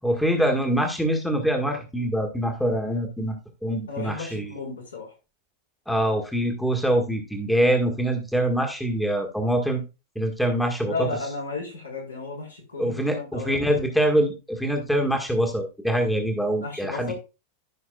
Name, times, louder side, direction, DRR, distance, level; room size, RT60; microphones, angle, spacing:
voice 1, 0.0-3.4 3.6-4.5 5.9-9.8 10.1-11.1 12.8-17.1, right 1 dB, 5° left, 3 dB, 1.6 m, -24 dB
voice 2, 3.9-5.1 10.8-13.8 16.6-17.1, left 3 dB, 75° left, -3 dB, 4.1 m, -34 dB
14.0 x 5.7 x 2.3 m, 0.28 s
figure-of-eight pair, 90°, 0 cm